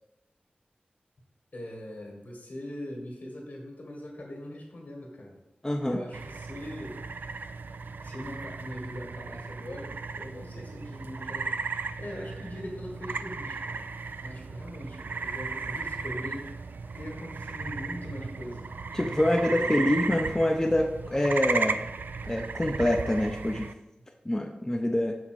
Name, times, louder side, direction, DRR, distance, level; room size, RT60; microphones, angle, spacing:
voice 1, 1.5-5.4 5.9-7.0 8.0-11.6 12.0-13.9 14.2-16.5 16.9-18.7 19.2-19.8, left 1 dB, 65° left, 0 dB, 1.9 m, -41 dB
voice 2, 5.6-6.0 18.9-21.8 22.2-23.7 24.3-25.2, left 1 dB, 15° left, 2 dB, 0.5 m, -26 dB
sound 1, 6.1-23.7, right 4 dB, 75° right, 0.3 m, -35 dB
6.0 x 4.2 x 6.1 m, 0.99 s
wide cardioid pair, 90°, 3 cm